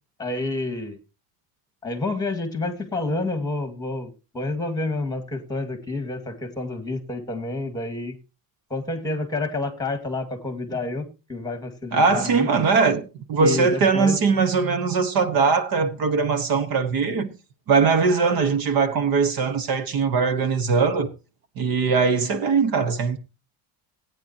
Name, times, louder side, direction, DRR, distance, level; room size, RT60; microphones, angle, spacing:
voice 1, 0.2-1.0 1.8-8.1 8.7-12.5 13.4-14.2, left 2 dB, 10° left, 2.1 m, -29 dB
voice 2, 11.9-17.3 17.7-21.1 21.6-23.2, right 5 dB, 50° right, 1.2 m, -21 dB
18.0 x 9.5 x 2.9 m
cardioid pair, 150°, 47 cm